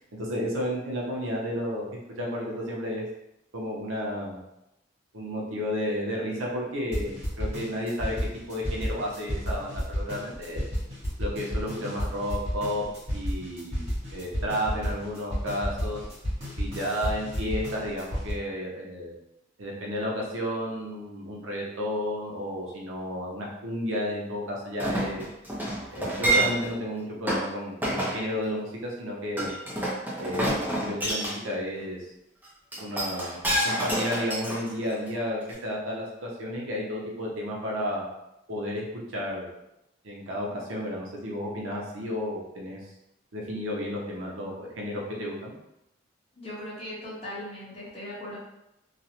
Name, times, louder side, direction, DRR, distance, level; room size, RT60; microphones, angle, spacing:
voice 1, 0.0-1.9 2.2-3.1 3.5-4.4 5.1-8.2 8.5-10.6 11.2-12.8 13.1-13.8 14.1-16.0 16.6-19.1 19.6-25.3 25.9-29.6 30.2-30.5 30.8-32.1 32.8-38.1 38.5-38.8 39.1-39.5 40.0-42.8 43.3-45.5, equal, 80° right, -2 dB, 0.7 m, -32 dB
sound 1, 6.9-18.3, equal, 30° right, 0.9 m, -32 dB
Chink clink, 24.8-26.8 27.3-27.5 27.8-28.2 29.4-31.4 32.7-35.1 35.5-35.6, right 1 dB, 10° right, 0.4 m, -28 dB
voice 2, 46.3-48.4, left 1 dB, 30° left, -7 dB, 0.8 m, -38 dB
2.4 x 2.0 x 2.8 m, 0.86 s
head